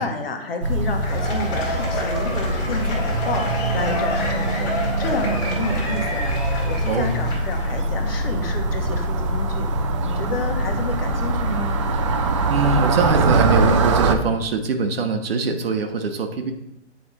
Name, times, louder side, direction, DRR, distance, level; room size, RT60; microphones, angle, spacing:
voice 1, 0.0-6.3 6.7-11.8, left 3 dB, 55° left, 4 dB, 1.4 m, -30 dB
sound 1, 0.6-14.1, right 2 dB, 25° right, 0.5 m, -23 dB
Cheering / Applause / Crowd, 0.9-7.7, left 1 dB, 25° left, 1.8 m, -29 dB
voice 2, 12.5-16.5, right 3 dB, 55° right, 6 dB, 1.1 m, -22 dB
8.8 x 4.2 x 4.1 m, 0.83 s
hypercardioid pair, 145°, 35 cm